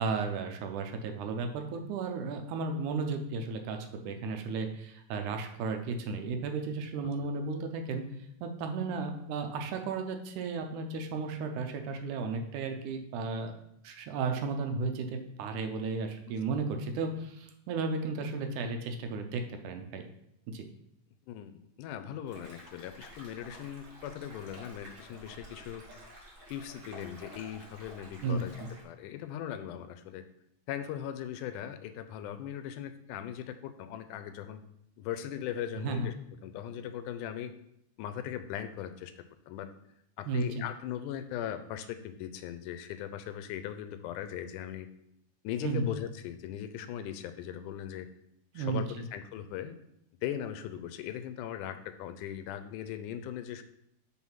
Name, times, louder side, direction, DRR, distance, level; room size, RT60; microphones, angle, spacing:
voice 1, 0.0-8.1 8.4-13.5 13.8-20.0 20.5-20.6 28.2-28.7 35.8-36.1 40.3-40.7 45.6-45.9 48.5-49.0, right 4 dB, 80° right, 5 dB, 2.1 m, -34 dB
voice 2, 21.3-25.9 26.5-28.6 28.8-30.2 30.7-34.6 35.0-36.1 36.4-37.5 38.0-39.7 40.2-44.9 45.4-48.1 48.6-49.8 50.2-53.6, left 10 dB, 85° left, 10 dB, 2.0 m, -39 dB
sound 1, 22.2-28.8, equal, 35° right, 1.4 m, -51 dB
6.2 x 3.7 x 5.6 m, 0.76 s
omnidirectional pair, 3.6 m